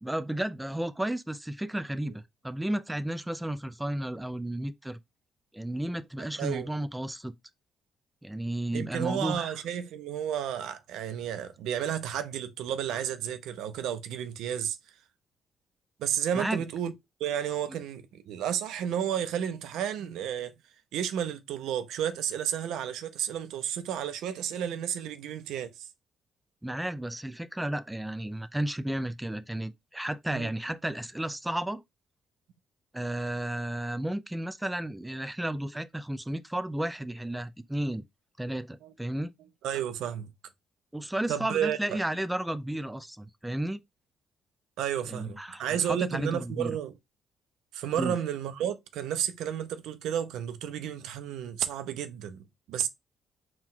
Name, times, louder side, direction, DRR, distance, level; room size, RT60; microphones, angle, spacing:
voice 1, 0.0-5.0 5.5-7.3 8.2-9.6 16.3-16.6 26.6-31.8 32.9-38.0 38.4-39.3 40.9-43.8 45.1-46.8 47.9-48.2, right 1 dB, 5° right, 0.4 m, -33 dB
voice 2, 6.4-6.7 8.7-14.8 16.0-16.9 17.2-20.5 20.9-25.9 30.3-30.5 38.8-38.9 39.6-40.3 41.3-41.8 44.8-46.9 47.7-52.9, right 9 dB, 85° right, 0.5 m, -32 dB
4.5 x 2.3 x 3.7 m
cardioid pair, 90°, 0 cm